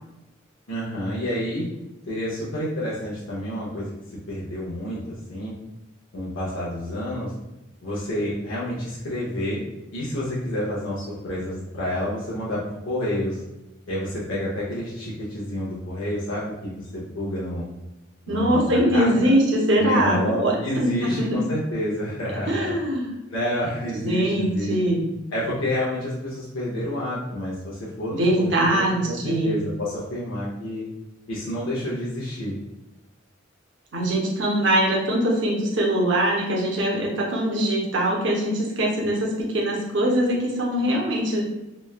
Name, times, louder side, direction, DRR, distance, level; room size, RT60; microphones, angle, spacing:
voice 1, 0.7-1.7 2.1-3.9 4.3-5.5 6.1-7.3 7.8-9.6 9.9-13.4 13.9-17.7 18.3-19.1 19.8-22.7 23.3-24.7 25.3-30.9 31.3-32.6, left 1 dB, 90° left, -7 dB, 0.7 m, -29 dB
voice 2, 18.3-21.4 22.3-23.1 23.9-25.1 28.1-29.6 33.9-41.4, right 1 dB, 65° right, -2 dB, 0.6 m, -22 dB
3.0 x 2.2 x 2.3 m, 0.96 s
head